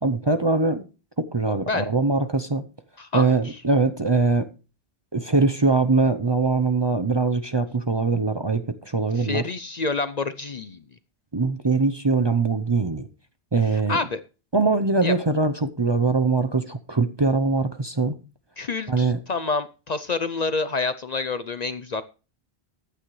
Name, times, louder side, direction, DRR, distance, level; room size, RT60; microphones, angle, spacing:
voice 1, 0.0-0.8 1.2-2.7 3.1-4.5 5.1-9.4 11.3-13.1 13.5-14.0 14.5-18.2 18.9-19.2, right 3 dB, 30° right, 0.6 m, -22 dB
voice 2, 3.0-3.3 9.2-10.8 13.9-14.2 15.0-15.1 18.6-22.0, left 4 dB, 45° left, 0.7 m, -28 dB
15.0 x 10.0 x 3.1 m
omnidirectional pair, 1.1 m